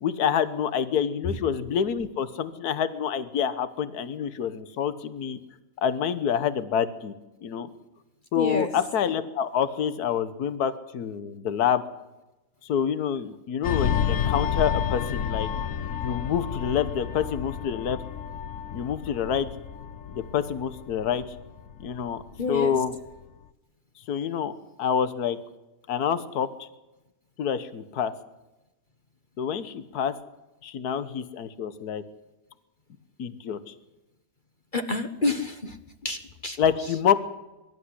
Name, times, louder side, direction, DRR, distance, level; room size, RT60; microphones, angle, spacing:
voice 1, 0.0-5.4 5.8-7.1 7.4-7.7 8.3-11.8 12.6-15.5 15.9-18.0 18.7-19.5 20.1-21.2 21.8-22.2 22.5-23.0 24.1-25.4 25.9-26.7 27.4-28.1 29.4-30.1 30.6-32.0 33.2-33.7 36.6-37.2, left 8 dB, 70° left, 14 dB, 1.6 m, -27 dB
voice 2, 8.3-8.7 22.4-22.7 34.7-35.8 36.0-36.6, left 2 dB, 35° left, 8 dB, 1.3 m, -28 dB
sound 1, 13.6-22.7 23.0-23.3, left 8 dB, 55° left, 1.2 m, -30 dB
22.5 x 13.0 x 9.9 m, 1.0 s
omnidirectional pair, 1.7 m